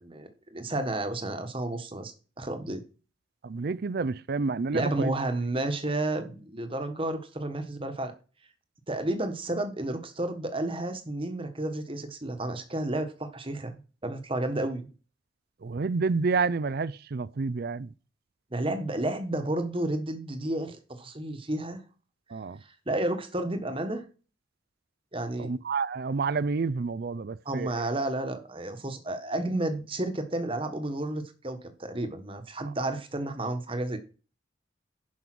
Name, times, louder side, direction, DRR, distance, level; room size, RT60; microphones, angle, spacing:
voice 1, 0.0-2.8 4.7-8.1 8.9-14.9 18.5-21.8 22.9-24.1 25.1-25.5 27.4-34.0, right 1 dB, 25° right, 1.3 m, -31 dB
voice 2, 3.4-5.1 15.6-17.9 22.3-22.6 25.4-27.9, right 4 dB, 50° right, 0.4 m, -29 dB
11.0 x 5.4 x 6.1 m
head